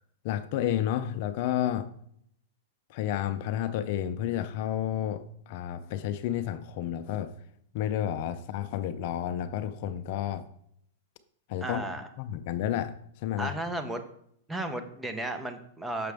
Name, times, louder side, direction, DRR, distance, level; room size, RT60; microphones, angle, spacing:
voice 1, 0.2-1.9 2.9-7.3 7.7-10.4 11.5-11.8 12.2-13.6, left 11 dB, 50° left, 11 dB, 0.5 m, -31 dB
voice 2, 11.6-12.1 13.4-14.0 14.5-16.1, right 1 dB, 5° right, 7 dB, 0.7 m, -34 dB
6.7 x 6.0 x 3.5 m, 0.69 s
hypercardioid pair, 140°, 0 cm